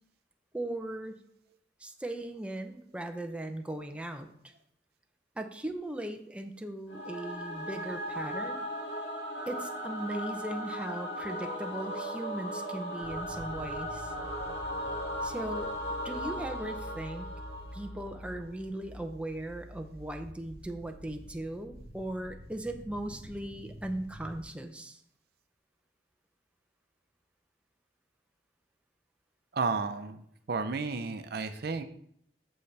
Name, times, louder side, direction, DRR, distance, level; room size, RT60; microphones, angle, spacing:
voice 1, 0.5-1.2 1.8-4.5 5.4-8.6 9.5-14.1 15.2-15.7 16.0-17.3 17.7-25.0, right 1 dB, 5° right, 4 dB, 0.6 m, -38 dB
Singing / Musical instrument, 6.9-18.2, equal, 85° left, 2.1 m, -37 dB
sound 1, 13.0-24.4, equal, 20° left, 1.6 m, -47 dB
voice 2, 29.5-30.2 30.5-31.8, right 4 dB, 60° right, 9 dB, 0.6 m, -32 dB
8.1 x 6.6 x 3.3 m, 0.67 s
head